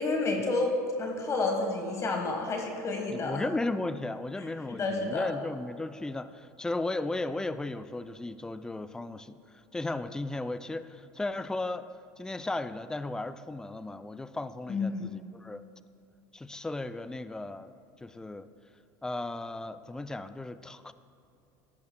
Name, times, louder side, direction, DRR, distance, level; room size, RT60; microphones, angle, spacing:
voice 1, 0.0-3.4 4.7-5.3 14.7-15.2, left 3 dB, 30° left, 2 dB, 1.4 m, -30 dB
voice 2, 3.1-9.4 9.7-11.9 12.2-15.6 16.3-17.7 18.0-18.5 19.0-20.9, left 2 dB, 5° left, 12 dB, 0.3 m, -35 dB
14.0 x 10.5 x 2.2 m, 2.7 s
supercardioid pair, 105°, 10 cm